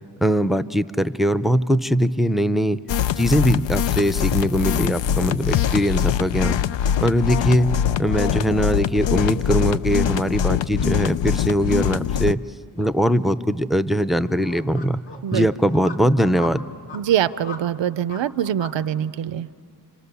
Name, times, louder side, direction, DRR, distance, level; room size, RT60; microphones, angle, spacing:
voice 1, 0.2-2.8 3.2-6.6 7.0-7.7 8.0-12.4 12.8-15.0 15.3-16.7, equal, ahead, 12 dB, 0.6 m, -21 dB
sound 1, 2.9-12.3, left 9 dB, 80° left, 0.5 m, -23 dB
sound 2, 8.1-18.8, left 4 dB, 30° left, 2.5 m, -43 dB
voice 2, 16.9-19.5, right 10 dB, 80° right, 15 dB, 0.6 m, -23 dB
28.5 x 25.5 x 6.9 m, 2.3 s
cardioid pair, 65°, 44 cm